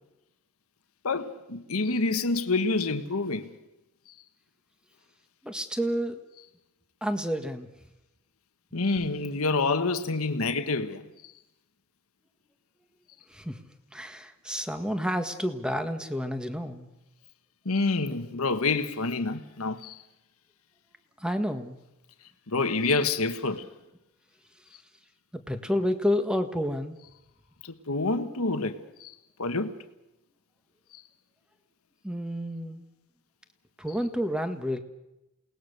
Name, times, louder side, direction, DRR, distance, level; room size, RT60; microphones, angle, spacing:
voice 1, 1.0-3.5 8.7-11.3 17.6-20.0 22.5-23.6 27.6-29.1 29.4-29.8 30.9-31.0, left 3 dB, 80° left, 1.4 m, -28 dB
voice 2, 5.4-6.2 7.0-7.7 13.3-13.6 13.9-16.9 21.2-21.8 25.3-27.0 32.0-32.9 33.8-34.8, equal, 5° right, 1.7 m, -30 dB
28.5 x 19.5 x 6.8 m
head